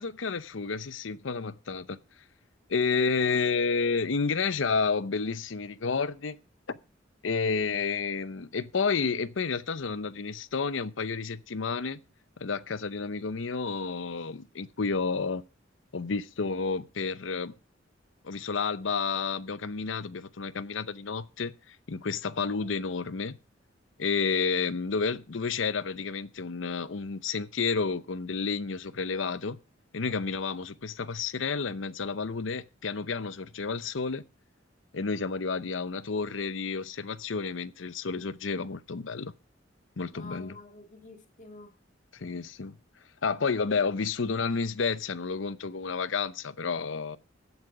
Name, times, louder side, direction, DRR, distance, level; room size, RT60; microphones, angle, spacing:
voice 1, 0.0-2.0 2.7-6.4 6.7-6.8 7.2-12.0 12.4-15.4 15.9-17.5 18.2-23.4 24.0-29.6 29.9-34.2 34.9-39.3 40.0-40.6 42.1-42.8 43.2-47.2, left 5 dB, 80° left, 0.7 m, -30 dB
voice 2, 22.3-22.7 40.1-41.7, left 3 dB, 45° left, 2.1 m, -49 dB
14.5 x 8.2 x 4.8 m
head